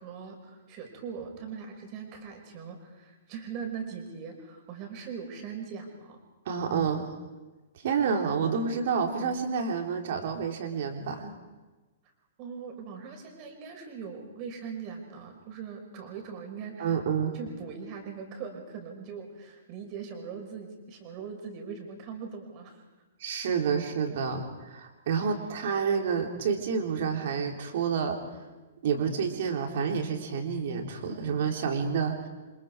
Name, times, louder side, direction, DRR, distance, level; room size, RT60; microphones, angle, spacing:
voice 1, 0.0-6.2 12.4-17.0 17.3-22.8, right 6 dB, 35° right, 3 dB, 5.6 m, -41 dB
voice 2, 6.5-7.1 7.8-11.3 16.8-17.4 23.2-28.2 28.8-32.3, right 6 dB, 50° right, 3 dB, 3.6 m, -29 dB
28.5 x 26.5 x 4.8 m, 1.2 s
figure-of-eight pair, 110°, 0 cm